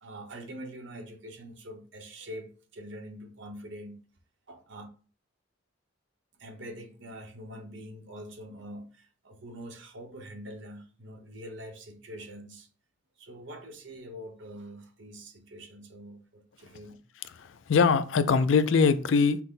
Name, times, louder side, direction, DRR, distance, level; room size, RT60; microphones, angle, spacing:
voice 1, 0.0-4.0 4.5-4.9 6.4-12.7 13.2-17.0, equal, 65° right, 0.9 m, -44 dB
voice 2, 17.3-19.4, left 5 dB, 70° left, 0.4 m, -22 dB
5.8 x 2.1 x 3.7 m
head